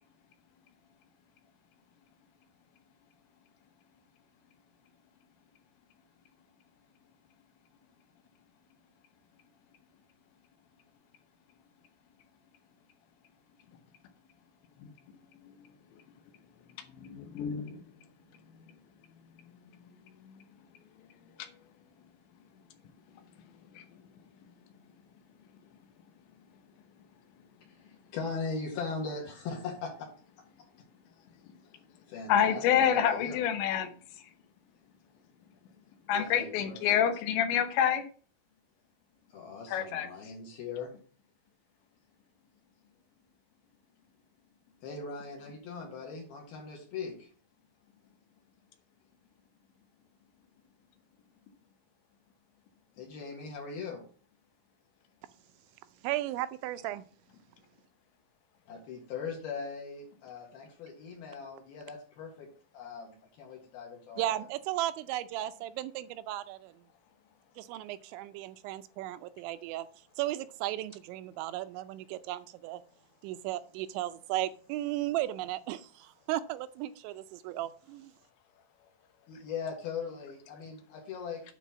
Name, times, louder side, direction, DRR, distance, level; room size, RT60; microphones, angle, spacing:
voice 1, 17.1-17.8 32.3-33.9 36.1-38.0 39.7-40.1, left 9 dB, 80° left, 8 dB, 3.2 m, -27 dB
voice 2, 27.8-30.1 32.1-33.4 36.1-37.0 39.3-40.9 44.8-47.3 53.0-54.0 58.7-64.4 79.3-81.4, left 5 dB, 65° left, -1 dB, 3.2 m, -40 dB
voice 3, 56.0-57.0 64.2-66.7 67.6-69.9 70.2-72.8 73.2-78.1, right 14 dB, 85° right, 12 dB, 2.9 m, -35 dB
9.3 x 4.2 x 6.9 m, 0.41 s
omnidirectional pair, 5.3 m